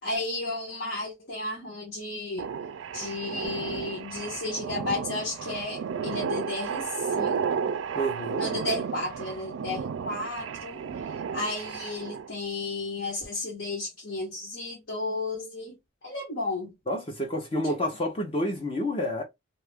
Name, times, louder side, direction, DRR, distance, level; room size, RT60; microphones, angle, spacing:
voice 1, 0.0-2.5 2.9-7.8 8.4-15.7 16.0-16.7 17.6-17.8, left 2 dB, 70° left, 1.3 m, -33 dB
sound 1, 2.4-12.3, right 6 dB, 85° right, 0.4 m, -33 dB
voice 2, 7.9-8.4 16.9-19.2, equal, 30° left, 0.6 m, -29 dB
2.8 x 2.4 x 3.4 m
head